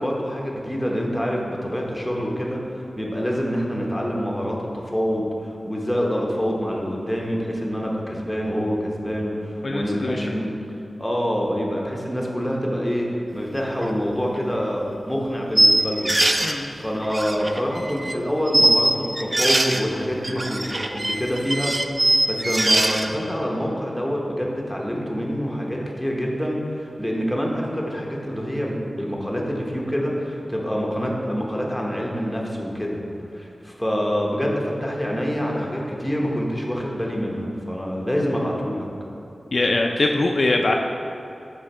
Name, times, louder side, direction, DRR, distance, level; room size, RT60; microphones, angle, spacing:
voice 1, 0.0-10.5 11.0-21.7 22.0-33.0 33.3-38.9, equal, ahead, -2 dB, 0.9 m, -26 dB
voice 2, 9.6-10.2 16.4-16.7 39.5-40.7, left 2 dB, 55° left, 2 dB, 0.3 m, -22 dB
sound 1, 13.8-13.9 14.4-14.5 15.6-16.5 17.0-18.2 18.5-19.8 20.2-23.1, right 1 dB, 25° right, 0.3 m, -21 dB
6.2 x 4.5 x 4.2 m, 2.7 s
wide cardioid pair, 100°, 0 cm